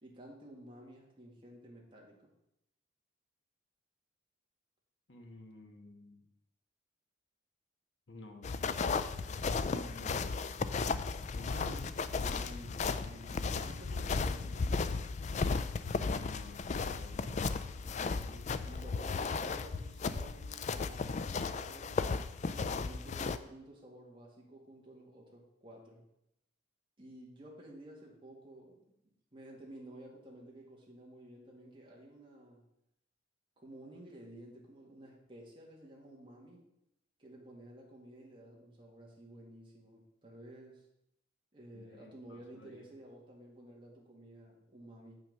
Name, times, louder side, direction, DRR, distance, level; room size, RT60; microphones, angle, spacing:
voice 1, 0.0-2.3 9.7-10.4 12.2-14.9 17.7-26.0 27.0-29.0 29.3-32.7 33.6-36.7 37.2-40.9 41.5-45.2, right 1 dB, 25° right, -2 dB, 1.9 m, -53 dB
voice 2, 5.1-6.2 8.1-8.8 10.0-10.3 11.3-11.9 14.1-14.5 16.1-17.6 41.7-42.8, left 2 dB, 65° left, 2 dB, 1.3 m, -51 dB
sound 1, 8.4-23.4, left 4 dB, 35° left, 0.3 m, -35 dB
7.8 x 5.8 x 5.5 m, 0.82 s
head